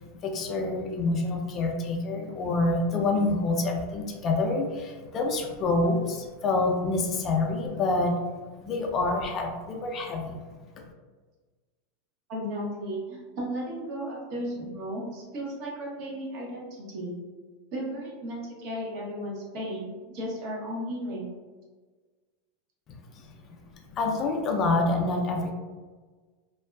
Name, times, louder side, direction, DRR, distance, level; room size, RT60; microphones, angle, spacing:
voice 1, 0.0-8.1 8.6-10.4 23.1-23.6 23.9-25.5, left 2 dB, 35° left, 1 dB, 0.4 m, -27 dB
voice 2, 12.3-17.1 17.7-21.3, equal, 55° right, -3 dB, 0.9 m, -35 dB
2.5 x 2.2 x 2.2 m, 1.4 s
supercardioid pair, 135°, 0 cm